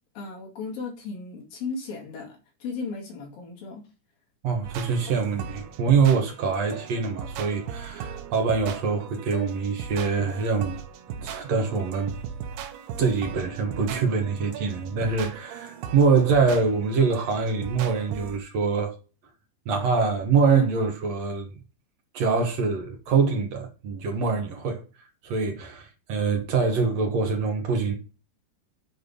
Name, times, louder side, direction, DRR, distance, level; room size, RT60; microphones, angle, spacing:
voice 1, 0.2-3.8, left 4 dB, 65° left, 3.8 m, -36 dB
voice 2, 4.4-10.8 11.1-12.2 13.0-19.0 19.7-21.5 22.1-24.8 25.2-27.9, right 5 dB, 60° right, 2.0 m, -24 dB
sound 1, 4.6-18.4, right 8 dB, 85° right, 2.8 m, -38 dB
8.5 x 4.5 x 5.4 m
omnidirectional pair, 4.6 m